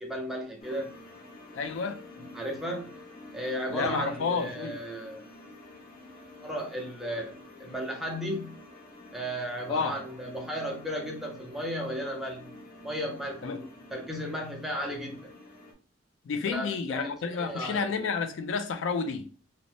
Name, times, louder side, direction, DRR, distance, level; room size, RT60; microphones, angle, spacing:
voice 1, 0.0-0.9 2.3-2.9 3.3-5.2 6.4-8.5 9.1-12.5 12.8-15.3 16.5-18.0, equal, ahead, 0.5 m, -35 dB
sound 1, 0.6-15.7, left 1 dB, 45° left, 0.6 m, -49 dB
voice 2, 1.5-2.0 3.7-4.8 9.7-10.0 13.4-13.6 16.2-19.3, left 5 dB, 90° left, 0.4 m, -30 dB
2.5 x 2.0 x 3.2 m
head